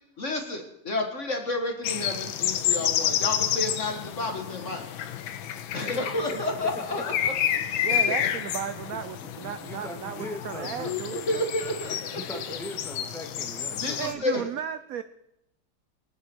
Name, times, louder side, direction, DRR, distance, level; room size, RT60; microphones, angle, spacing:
voice 1, 0.2-4.9 5.7-7.3 7.9-8.2 10.6-12.6 13.7-14.4, left 2 dB, 40° left, 1.8 m, -31 dB
sound 1, 1.8-14.1, left 9 dB, 85° left, 1.6 m, -30 dB
voice 2, 7.8-11.3 14.0-15.0, right 9 dB, 70° right, 0.8 m, -35 dB
voice 3, 9.2-11.0 12.1-14.5, left 1 dB, ahead, 2.0 m, -40 dB
24.0 x 9.5 x 4.6 m
omnidirectional pair, 2.1 m